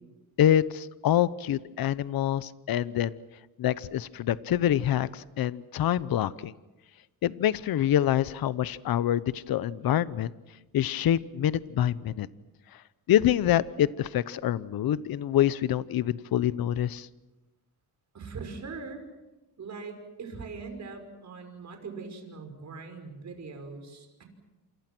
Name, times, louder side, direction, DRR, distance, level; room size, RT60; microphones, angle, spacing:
voice 1, 0.4-3.2 3.6-6.5 7.2-10.3 10.7-12.3 13.1-17.1, left 11 dB, 70° left, 17 dB, 0.9 m, -26 dB
voice 2, 18.1-19.0 19.6-24.2, right 4 dB, 50° right, 5 dB, 5.5 m, -41 dB
28.0 x 27.5 x 6.1 m, 1.1 s
cardioid pair, 135°, 37 cm